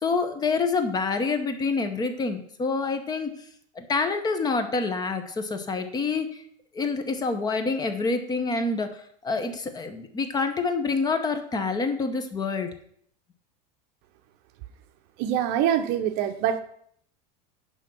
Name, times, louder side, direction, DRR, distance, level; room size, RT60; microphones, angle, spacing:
voice 1, 0.0-3.3 3.8-6.4 6.7-12.7, left 4 dB, 20° left, 8 dB, 0.8 m, -27 dB
voice 2, 15.2-16.6, right 10 dB, 50° right, 9 dB, 0.8 m, -24 dB
10.5 x 3.5 x 6.1 m, 0.64 s
supercardioid pair, 145°, 21 cm